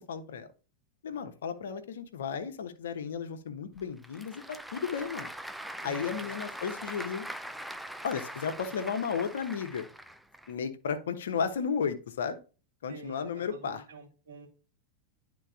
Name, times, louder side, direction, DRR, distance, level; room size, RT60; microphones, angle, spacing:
voice 1, 0.1-0.5 1.0-5.3 5.8-7.3 8.0-9.9 10.5-12.4 12.8-13.8, left 6 dB, 60° left, 8 dB, 0.9 m, -34 dB
Applause / Crowd, 3.8-10.5, right 1 dB, ahead, 0.4 m, -42 dB
voice 2, 5.8-6.4 12.9-14.5, right 4 dB, 65° right, -1 dB, 2.3 m, -48 dB
11.0 x 3.9 x 2.4 m, 0.34 s
figure-of-eight pair, 90°, 0 cm